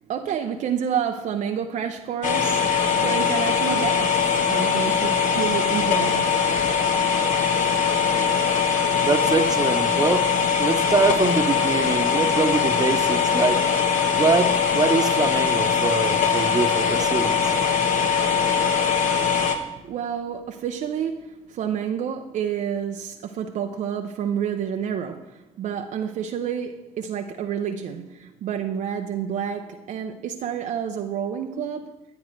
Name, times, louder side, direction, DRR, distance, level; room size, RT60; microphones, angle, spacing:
voice 1, 0.1-6.4 19.8-32.0, right 8 dB, 55° right, 0.6 m, -29 dB
sound 1, 2.2-19.6, left 6 dB, 55° left, 1.2 m, -21 dB
voice 2, 8.6-10.3 10.6-13.6 14.1-17.5, right 4 dB, 25° right, 1.0 m, -24 dB
11.5 x 9.2 x 3.3 m
hypercardioid pair, 50°, 15 cm